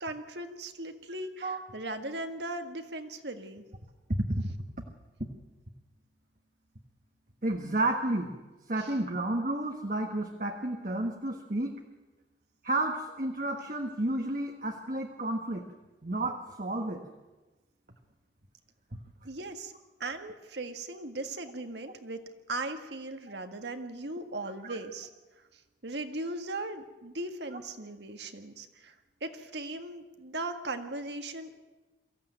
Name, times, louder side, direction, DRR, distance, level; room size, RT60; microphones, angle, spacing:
voice 1, 0.0-3.6 8.8-8.9 19.2-19.7 20.0-25.1 25.8-29.0 29.2-31.6, right 2 dB, 70° right, 7 dB, 1.8 m, -38 dB
voice 2, 4.1-4.5 7.4-8.3 8.7-11.7 12.6-15.6 16.0-17.0 24.7-24.8 27.5-27.6, right 1 dB, 45° right, 3 dB, 1.5 m, -31 dB
23.0 x 15.5 x 9.2 m, 1.2 s
head